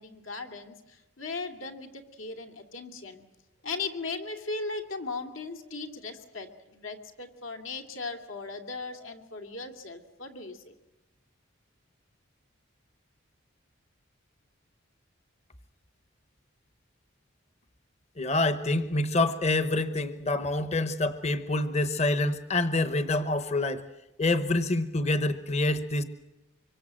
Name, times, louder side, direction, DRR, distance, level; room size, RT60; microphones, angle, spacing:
voice 1, 0.0-3.2 3.6-10.7, left 3 dB, 75° left, 6 dB, 2.7 m, -38 dB
voice 2, 18.2-23.9 24.2-26.0, left 2 dB, 30° left, 11 dB, 1.0 m, -27 dB
25.0 x 24.0 x 7.7 m, 0.99 s
head